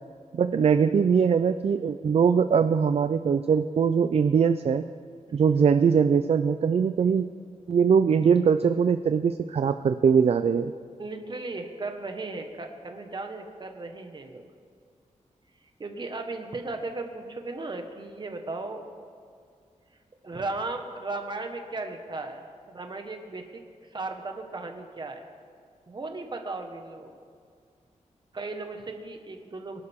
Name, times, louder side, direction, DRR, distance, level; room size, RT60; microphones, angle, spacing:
voice 1, 0.3-4.8 5.3-7.3 7.7-10.7, right 6 dB, 50° right, 10 dB, 0.4 m, -22 dB
voice 2, 11.0-14.4 15.8-18.9 20.2-23.6 23.9-25.2 25.9-27.1 28.3-29.8, right 3 dB, 35° right, 4 dB, 1.4 m, -36 dB
23.5 x 11.5 x 3.6 m, 2.2 s
wide cardioid pair, 155°, 13 cm